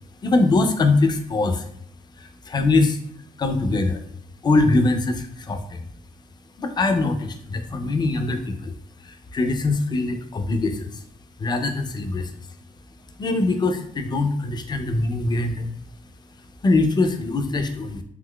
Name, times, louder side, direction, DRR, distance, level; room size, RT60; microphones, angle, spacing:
voice 1, 0.2-1.7 2.2-3.0 3.4-4.0 4.4-5.8 6.6-8.7 9.0-11.0 11.4-12.3 13.2-15.7 16.6-18.0, left 3 dB, 30° left, 7 dB, 0.4 m, -22 dB
3.7 x 2.8 x 2.2 m, 0.70 s
cardioid pair, 120°, 15 cm